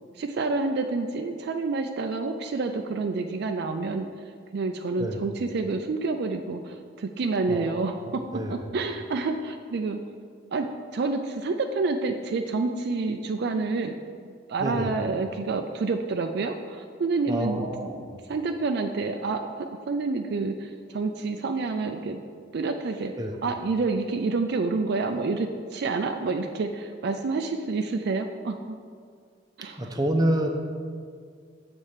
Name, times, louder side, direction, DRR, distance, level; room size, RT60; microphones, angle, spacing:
voice 1, 0.2-8.2 8.5-10.0 10.5-10.7 10.9-22.2 22.5-23.1 23.4-28.8 29.6-29.9, right 3 dB, 60° right, 5 dB, 0.4 m, -28 dB
voice 2, 7.5-8.5 14.6-14.9 17.3-18.2 23.2-23.3 29.8-30.5, right 1 dB, 20° right, 2 dB, 0.7 m, -28 dB
7.2 x 4.3 x 6.5 m, 2.1 s
head